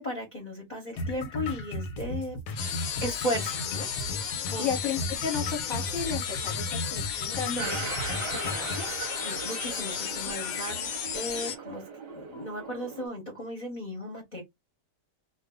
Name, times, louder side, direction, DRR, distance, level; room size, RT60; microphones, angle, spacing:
voice 1, 0.0-3.9 4.5-4.7 7.4-7.9 9.2-11.8 12.1-14.4, equal, 35° left, 0.9 m, -36 dB
sound 1, 1.0-9.0, left 1 dB, 90° left, 1.3 m, -36 dB
sound 2, 2.6-11.6, left 8 dB, 70° left, 1.0 m, -34 dB
voice 2, 4.3-7.8 8.1-8.8, left 6 dB, ahead, 1.1 m, -34 dB
sound 3, 7.6-13.1, right 5 dB, 50° right, 0.8 m, -39 dB
2.5 x 2.4 x 3.7 m
omnidirectional pair, 1.7 m